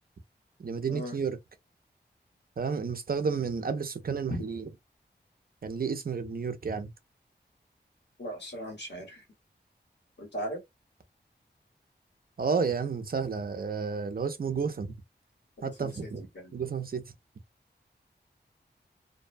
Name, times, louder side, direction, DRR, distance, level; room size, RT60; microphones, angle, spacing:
voice 1, 0.6-1.4 2.6-4.7 5.6-6.9 12.4-14.9 15.6-16.3 16.5-17.0, right 5 dB, 55° right, 0.5 m, -31 dB
voice 2, 8.2-9.2 10.2-10.6 15.8-16.5, equal, 70° left, 1.4 m, -38 dB
2.6 x 2.1 x 2.6 m
wide cardioid pair, 55°, 18 cm